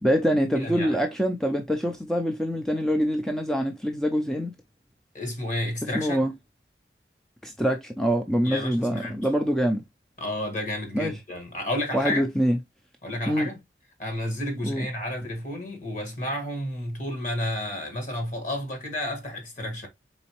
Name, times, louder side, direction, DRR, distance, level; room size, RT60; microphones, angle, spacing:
voice 1, 0.0-4.5 5.9-6.3 7.4-9.8 10.9-11.1 11.9-12.6 13.3-13.5 14.6-14.9, equal, 5° left, 0.4 m, -25 dB
voice 2, 0.5-1.0 5.1-6.2 8.4-9.3 10.2-12.3 13.0-13.6 14.0-19.9, left 1 dB, 45° left, 1.5 m, -31 dB
4.1 x 3.9 x 2.9 m
head